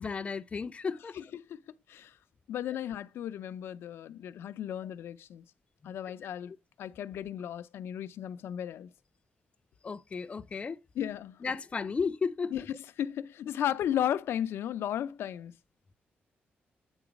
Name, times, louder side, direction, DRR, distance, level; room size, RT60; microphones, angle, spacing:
voice 1, 0.0-1.1 9.8-10.8 11.4-12.6, left 5 dB, 30° left, 0.5 m, -34 dB
voice 2, 1.1-1.6 1.9-2.1 2.5-5.4 5.8-6.5 6.8-8.9 10.9-11.4 12.5-15.5, left 10 dB, 85° left, 0.5 m, -35 dB
9.0 x 3.8 x 5.1 m
cardioid pair, 130°, 4 cm